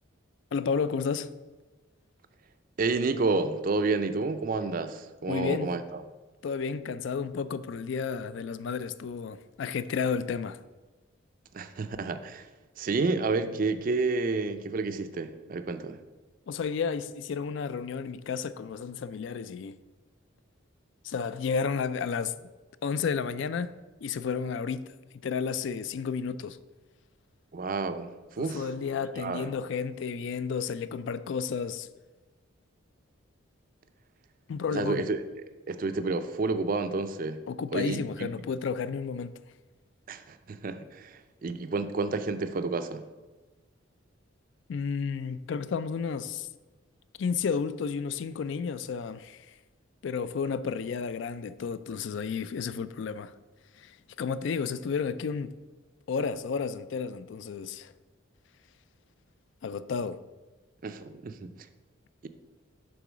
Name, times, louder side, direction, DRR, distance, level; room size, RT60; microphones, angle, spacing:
voice 1, 0.5-1.3 5.3-5.7 6.4-10.6 16.5-19.8 21.0-22.4 22.8-23.7 24.0-24.9 25.2-26.6 28.4-31.9 34.5-35.0 37.5-39.4 44.7-46.5 47.2-49.5 50.0-53.3 53.8-55.5 56.1-57.9 59.6-60.2, left 5 dB, 60° left, 0.3 m, -32 dB
voice 2, 2.8-5.8 11.5-12.5 12.8-16.0 27.5-28.7 29.2-29.5 34.7-37.4 37.7-38.3 40.1-43.0 60.8-61.5, right 3 dB, 40° right, 0.4 m, -30 dB
6.9 x 3.7 x 6.1 m
head